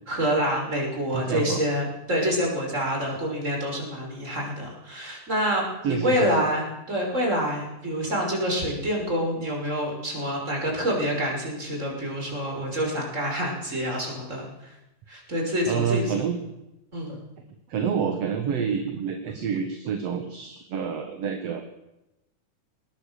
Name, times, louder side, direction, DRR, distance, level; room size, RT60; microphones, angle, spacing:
voice 1, 0.1-14.7 15.1-16.1 16.9-17.2, equal, 20° right, 0 dB, 6.4 m, -27 dB
voice 2, 1.1-1.6 5.8-6.3 15.7-16.4 17.7-21.6, right 7 dB, 55° right, 6 dB, 2.4 m, -28 dB
21.5 x 19.0 x 6.7 m, 0.93 s
omnidirectional pair, 3.6 m